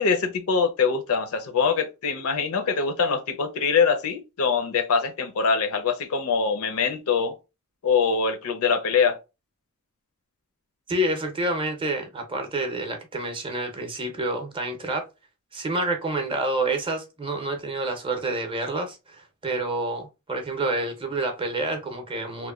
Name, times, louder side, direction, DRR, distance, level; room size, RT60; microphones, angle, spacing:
voice 1, 0.0-7.4 7.8-9.2, left 5 dB, 65° left, 0.5 m, -23 dB
voice 2, 10.9-15.1 15.5-22.5, right 2 dB, 25° right, 0.6 m, -28 dB
3.0 x 2.1 x 2.3 m
head